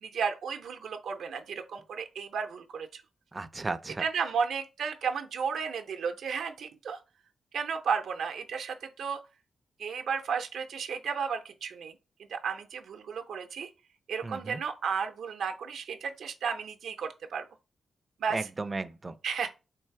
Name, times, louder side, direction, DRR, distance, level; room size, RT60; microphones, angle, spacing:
voice 1, 0.0-3.0 4.0-7.0 7.5-9.2 9.8-11.9 12.3-13.7 14.1-17.4 18.2-18.4 19.2-19.5, right 6 dB, 85° right, 0.5 m, -33 dB
voice 2, 3.3-4.0 14.2-14.6 18.3-19.2, right 3 dB, 25° right, 0.3 m, -35 dB
3.2 x 3.2 x 4.6 m
wide cardioid pair, 125°, 0 cm